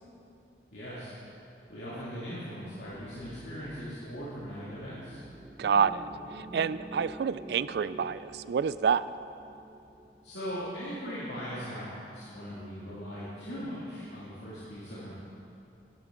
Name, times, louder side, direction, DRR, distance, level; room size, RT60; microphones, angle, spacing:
voice 1, 0.7-1.1 1.7-5.2 10.2-15.2, equal, 85° left, -10 dB, 2.4 m, -39 dB
sound 1, 2.7-11.1, right 1 dB, 20° right, 0.6 m, -48 dB
voice 2, 5.6-6.0 6.5-9.0, right 6 dB, 65° right, 15 dB, 0.3 m, -27 dB
15.0 x 10.5 x 3.8 m, 2.6 s
head